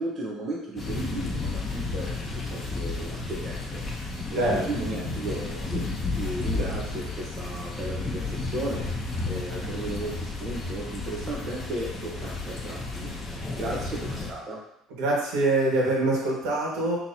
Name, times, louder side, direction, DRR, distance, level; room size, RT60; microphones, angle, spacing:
voice 1, 0.0-3.8 4.3-5.9 6.2-8.9 9.3-14.6, right 1 dB, 35° right, -3 dB, 0.9 m, -35 dB
sound 1, 0.8-14.3, left 3 dB, 15° left, 0.8 m, -32 dB
voice 2, 15.0-17.0, right 2 dB, 80° right, -3 dB, 1.6 m, -24 dB
6.0 x 3.0 x 2.8 m, 0.81 s
cardioid pair, 130°, 0 cm